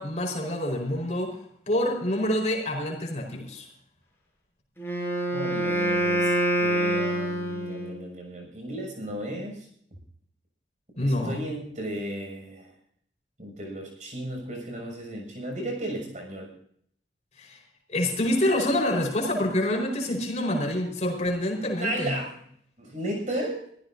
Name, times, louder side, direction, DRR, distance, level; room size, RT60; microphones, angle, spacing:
voice 1, 0.0-1.3 1.7-3.7 11.0-11.4 17.4-17.6 17.9-22.1, left 1 dB, 40° left, 1 dB, 4.8 m, -27 dB
Wind instrument woodwind instrument, 4.8-8.1, right 1 dB, 15° left, 7.4 m, -26 dB
voice 2, 5.3-9.7 11.0-12.7 13.4-16.5 21.8-22.4 22.8-23.6, right 1 dB, 45° right, 2 dB, 6.8 m, -34 dB
24.5 x 15.0 x 2.7 m, 0.64 s
head